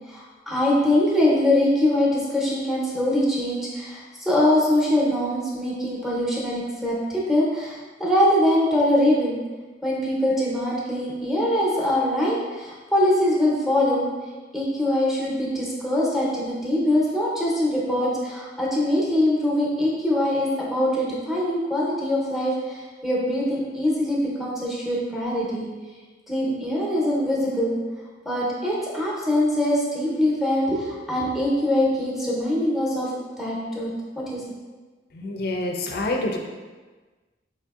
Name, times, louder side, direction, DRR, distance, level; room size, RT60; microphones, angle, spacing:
voice 1, 0.1-9.4 9.8-14.1 14.5-25.7 26.3-27.8 28.2-33.1 33.4-33.9 34.2-34.4, left 1 dB, ahead, -5 dB, 0.7 m, -23 dB
voice 2, 35.1-36.4, left 2 dB, 60° left, 2 dB, 0.4 m, -27 dB
4.1 x 2.6 x 2.4 m, 1.3 s
head